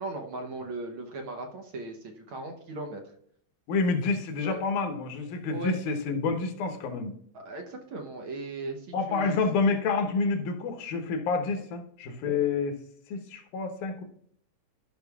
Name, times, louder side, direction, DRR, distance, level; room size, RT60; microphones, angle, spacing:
voice 1, 0.0-3.0 4.4-4.6 5.5-5.8 7.3-9.4, right 2 dB, 70° right, 3 dB, 1.2 m, -38 dB
voice 2, 3.7-7.1 8.9-12.8 13.1-14.0, left 4 dB, 85° left, 6 dB, 2.6 m, -28 dB
13.0 x 6.3 x 2.4 m, 0.64 s
omnidirectional pair, 3.5 m